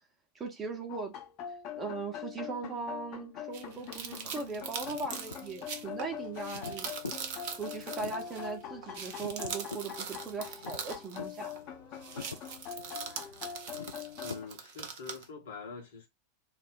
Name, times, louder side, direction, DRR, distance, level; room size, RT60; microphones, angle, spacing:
voice 1, 0.3-1.1 1.7-6.9 7.6-11.6, right 4 dB, 20° right, 0.8 m, -39 dB
sound 1, 0.9-14.5, left 9 dB, 40° left, 0.7 m, -43 dB
sound 2, 3.5-8.5 8.8-11.7 11.9-15.2, right 6 dB, 45° right, 0.5 m, -42 dB
sound 3, 3.7-14.4, left 4 dB, 80° left, 0.3 m, -48 dB
voice 2, 14.2-16.1, left 5 dB, 60° left, 0.9 m, -44 dB
2.4 x 2.0 x 3.7 m
figure-of-eight pair, 90°, 0 cm